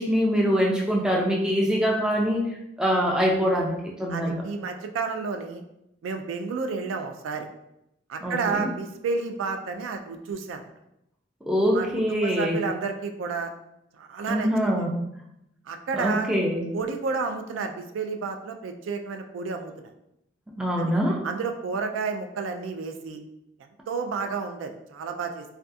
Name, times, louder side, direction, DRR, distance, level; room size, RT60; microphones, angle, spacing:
voice 1, 0.0-2.4 2.8-4.4 8.2-8.7 11.5-12.6 14.3-14.9 15.9-16.6 20.6-21.2, equal, 5° right, -2 dB, 0.3 m, -24 dB
voice 2, 4.1-5.6 6.0-7.5 8.1-10.6 11.7-13.5 14.0-14.7 15.7-16.3 16.7-19.9 20.8-20.9 21.2-23.2 23.9-25.4, right 4 dB, 85° right, 6 dB, 0.3 m, -31 dB
2.3 x 2.3 x 2.6 m, 0.83 s
head